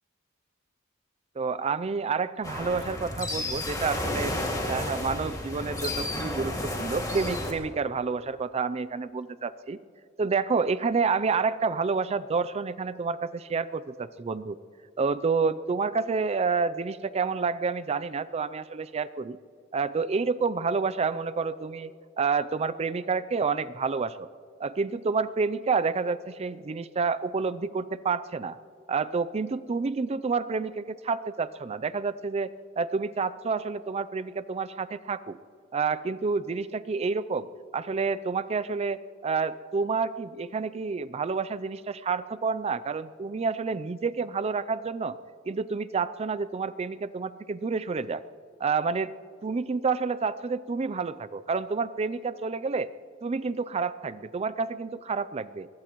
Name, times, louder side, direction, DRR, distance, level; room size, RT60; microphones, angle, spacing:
voice 1, 1.4-4.4 4.7-9.8 10.2-14.6 15.0-19.4 19.7-21.9 22.2-24.3 24.6-28.6 28.9-35.4 35.7-45.2 45.5-48.2 48.6-49.1 49.4-52.9 53.2-55.7, right 4 dB, 30° right, 15 dB, 0.4 m, -29 dB
sound 1, 2.4-7.5, left 1 dB, 15° left, 2.1 m, -32 dB
22.5 x 20.5 x 3.0 m, 2.5 s
head